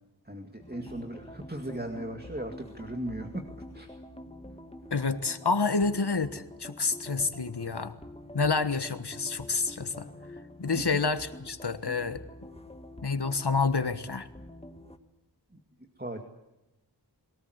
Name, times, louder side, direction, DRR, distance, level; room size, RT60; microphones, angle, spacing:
voice 1, 0.3-3.4 3.7-3.9 16.0-16.2, right 1 dB, 25° right, 4 dB, 2.2 m, -37 dB
sound 1, 0.6-15.0, left 1 dB, 15° left, 1.7 m, -46 dB
voice 2, 4.9-7.9 8.3-10.1 10.6-12.2 13.0-14.3, left 4 dB, 70° left, 11 dB, 1.5 m, -28 dB
22.5 x 18.5 x 8.1 m, 0.96 s
wide cardioid pair, 45°, 42 cm